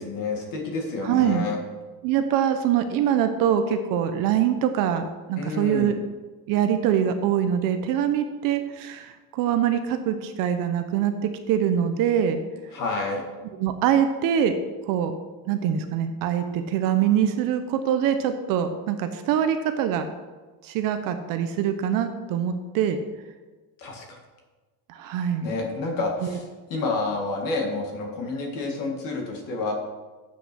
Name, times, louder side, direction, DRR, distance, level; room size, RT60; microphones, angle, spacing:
voice 1, 0.0-1.6 5.4-5.9 12.7-13.2 23.8-24.2 25.4-29.7, left 3 dB, 50° left, 1 dB, 2.0 m, -29 dB
voice 2, 1.0-1.5 2.0-5.9 6.5-12.4 13.6-14.5 14.9-15.1 15.5-20.1 20.6-23.0 24.9-25.5 26.2-26.4, right 9 dB, 55° right, 8 dB, 0.7 m, -24 dB
8.3 x 5.8 x 6.1 m, 1.3 s
cardioid pair, 160°, 41 cm